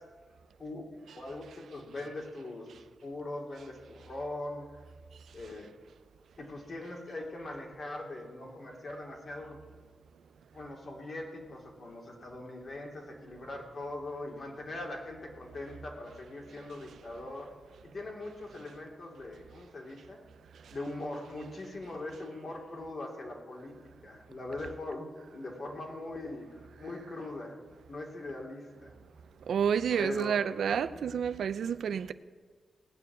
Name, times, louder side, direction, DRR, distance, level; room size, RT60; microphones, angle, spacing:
voice 1, 1.2-2.7 3.0-4.6 5.3-5.7 6.4-9.6 10.5-17.5 17.9-20.2 20.7-23.7 24.0-25.1 25.3-27.6 27.9-28.9 30.0-30.3, left 2 dB, 45° left, 2.9 m, -41 dB
voice 2, 29.5-32.1, right 7 dB, 85° right, 0.6 m, -29 dB
18.0 x 6.8 x 9.4 m
wide cardioid pair, 115°, 0 cm